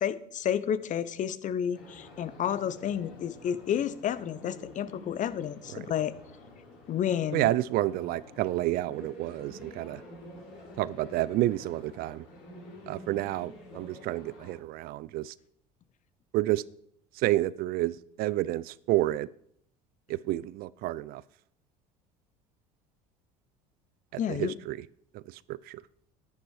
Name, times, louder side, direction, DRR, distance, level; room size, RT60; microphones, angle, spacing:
voice 1, 0.0-6.1 6.9-7.5 24.2-24.5, left 9 dB, 45° left, 0.9 m, -31 dB
sound 1, 1.7-14.6, left 1 dB, 65° left, 6.1 m, -49 dB
voice 2, 7.3-10.0 10.8-12.3 12.9-15.3 16.3-16.6 17.2-19.3 20.1-21.2 24.1-24.8 25.1-25.8, right 16 dB, 60° right, 0.5 m, -30 dB
10.5 x 10.5 x 4.9 m
hypercardioid pair, 75°, 17 cm